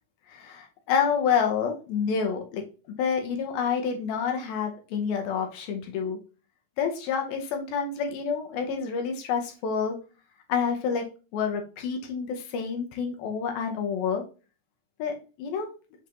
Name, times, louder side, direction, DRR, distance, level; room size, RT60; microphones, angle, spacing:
voice 1, 0.3-2.6 3.0-6.2 6.8-10.0 10.5-11.1 11.3-14.2 15.0-15.7, left 6 dB, 75° left, 3 dB, 2.8 m, -28 dB
7.6 x 4.9 x 2.6 m, 0.34 s
omnidirectional pair, 4.5 m